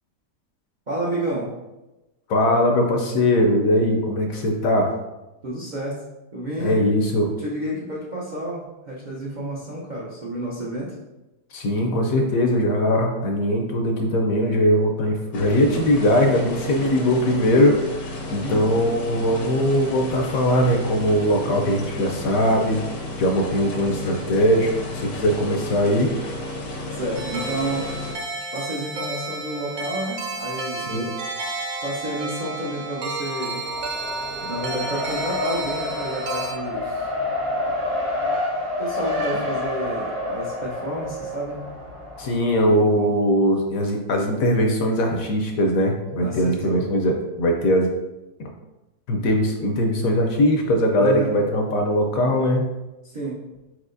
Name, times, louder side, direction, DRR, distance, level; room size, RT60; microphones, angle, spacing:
voice 1, 0.9-1.5 5.4-6.0 6.3-6.8 7.4-11.0 18.4-18.7 26.9-27.9 28.5-30.9 31.8-33.6 34.4-37.1 38.8-41.6 42.7-43.1 46.2-46.9 51.0-51.3 53.0-53.4, right 1 dB, 75° right, -5 dB, 0.4 m, -30 dB
voice 2, 2.3-4.9 6.6-7.3 11.5-22.8 23.2-26.1 30.9-31.1 42.2-47.9 49.1-52.7, equal, 70° left, 2 dB, 0.9 m, -20 dB
sound 1, 15.3-28.1, left 2 dB, 85° left, 1.5 m, -33 dB
sound 2, 27.1-36.5, right 2 dB, 55° right, 1.0 m, -31 dB
Race car auto racing, 33.6-42.6, left 2 dB, 90° right, 1.7 m, -28 dB
4.7 x 4.1 x 2.5 m, 1.0 s
omnidirectional pair, 1.8 m